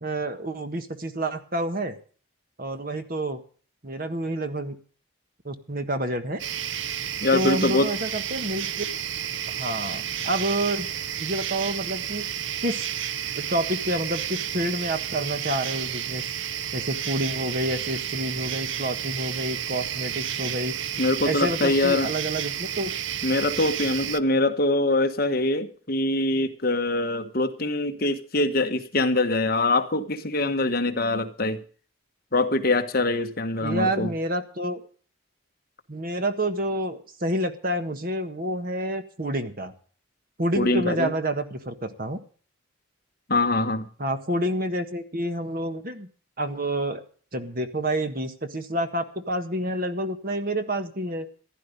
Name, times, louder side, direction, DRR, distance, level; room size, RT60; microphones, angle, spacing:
voice 1, 0.0-2.0 2.6-3.4 3.8-4.8 5.4-6.4 7.3-8.9 9.5-10.9 11.2-12.3 12.6-12.9 13.3-16.2 16.7-20.7 21.2-22.9 33.6-34.8 35.9-39.7 40.4-42.2 44.0-46.1 46.4-47.0 47.3-51.3, right 1 dB, 45° right, 1.5 m, -28 dB
sound 1, 6.4-24.2, right 9 dB, 65° right, 0.6 m, -31 dB
voice 2, 7.2-7.9 21.0-22.1 23.2-31.6 32.3-34.1 40.6-41.1 43.3-43.9, left 2 dB, 45° left, 1.4 m, -23 dB
15.5 x 11.0 x 5.3 m
head